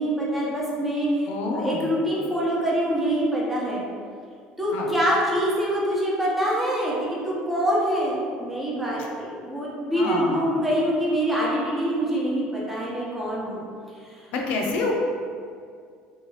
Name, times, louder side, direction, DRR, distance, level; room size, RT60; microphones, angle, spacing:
voice 1, 0.0-1.3 1.5-3.8 4.6-13.6 14.0-14.3, equal, 5° right, -6 dB, 0.7 m, -25 dB
voice 2, 1.3-1.9 4.7-5.0 10.0-10.6 14.3-14.9, left 3 dB, 70° left, 0 dB, 0.5 m, -28 dB
2.6 x 2.3 x 3.1 m, 2.2 s
supercardioid pair, 105°, 3 cm